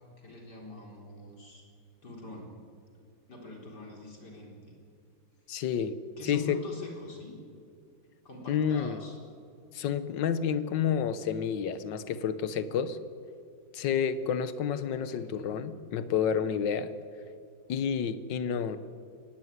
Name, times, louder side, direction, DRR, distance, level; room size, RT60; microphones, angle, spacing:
voice 1, 0.2-1.7 2.0-2.5 3.3-4.8 6.2-7.4 8.2-9.2 14.9-15.5, left 2 dB, 65° left, 0 dB, 4.8 m, -44 dB
voice 2, 5.5-6.0 6.2-6.6 8.5-9.0 9.7-13.0 13.7-16.9 17.7-18.8, left 7 dB, 85° left, 13 dB, 1.7 m, -29 dB
24.0 x 18.0 x 9.6 m, 2.4 s
omnidirectional pair, 1.9 m